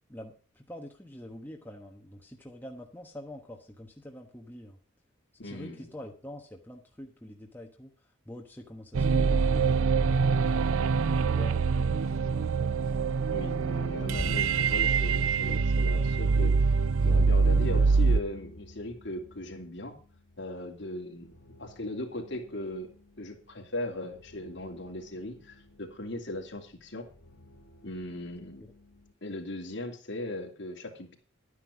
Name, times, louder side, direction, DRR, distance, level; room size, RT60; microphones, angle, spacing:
voice 1, 0.1-4.8 5.4-7.9 8.3-10.0 11.2-12.7 28.6-28.7, left 1 dB, 10° left, 1 dB, 1.1 m, -45 dB
voice 2, 5.4-5.9 13.3-16.6 17.0-19.9 20.4-21.3 21.6-22.9 23.2-27.1 27.8-28.6 29.2-31.2, left 1 dB, 60° left, 2 dB, 2.7 m, -38 dB
sound 1, 8.9-18.2, right 4 dB, 80° right, 0.5 m, -25 dB
sound 2, 14.0-29.1, left 1 dB, 85° left, 1.7 m, -47 dB
11.5 x 9.8 x 5.0 m, 0.38 s
head